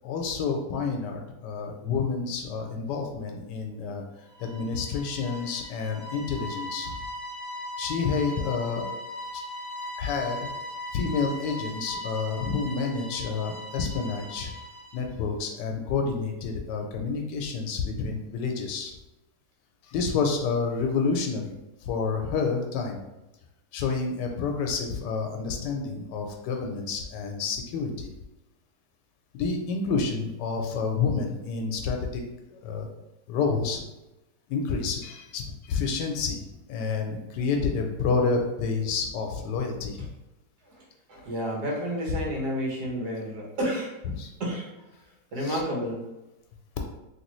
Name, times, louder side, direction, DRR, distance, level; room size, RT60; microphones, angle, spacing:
voice 1, 0.0-4.0 4.4-7.0 7.8-8.8 9.3-9.4 10.0-10.4 10.9-14.5 14.9-18.9 19.8-21.5 21.8-23.0 23.7-28.1 29.3-32.2 32.5-32.9 33.3-33.8 34.5-40.1 44.2-44.3 45.4-45.6, left 5 dB, 85° left, 3 dB, 1.2 m, -29 dB
sound 1, 4.3-15.1, left 1 dB, 65° left, 0.6 m, -39 dB
voice 2, 40.7-43.9 44.4-44.7 45.3-46.0, equal, 70° right, -2 dB, 1.5 m, -31 dB
3.2 x 2.9 x 3.0 m, 0.98 s
omnidirectional pair, 1.8 m